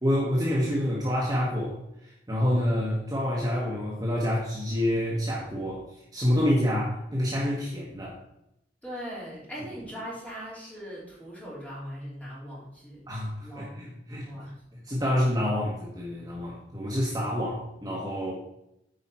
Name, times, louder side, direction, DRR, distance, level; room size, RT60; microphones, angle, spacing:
voice 1, 0.0-8.2 13.1-14.3 14.7-18.3, left 1 dB, 20° right, -4 dB, 1.2 m, -28 dB
voice 2, 8.8-13.1 13.4-13.9 14.3-14.6, equal, 10° left, -6 dB, 3.1 m, -40 dB
8.9 x 4.9 x 4.3 m, 0.84 s
head